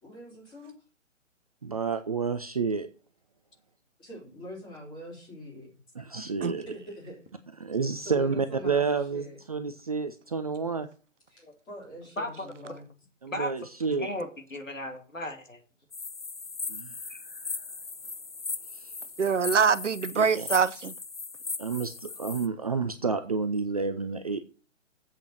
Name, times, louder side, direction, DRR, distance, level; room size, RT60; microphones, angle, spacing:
voice 1, 0.0-0.7 4.0-5.7 6.7-7.2 8.0-9.4 11.3-12.9, equal, 10° left, 3.7 m, -43 dB
voice 2, 1.6-2.9 6.0-6.7 7.6-10.9 13.2-14.1 16.7-17.6 18.7-18.9 20.1-20.5 21.6-24.4, right 5 dB, 30° right, 0.5 m, -30 dB
voice 3, 12.2-12.5 13.3-13.5 14.0-15.6, left 1 dB, 80° left, 2.6 m, -35 dB
sound 1, 15.9-22.5, left 4 dB, 30° left, 0.4 m, -38 dB
voice 4, 19.2-20.9, right 6 dB, 70° right, 0.7 m, -24 dB
7.7 x 6.7 x 6.3 m
figure-of-eight pair, 135°, 38 cm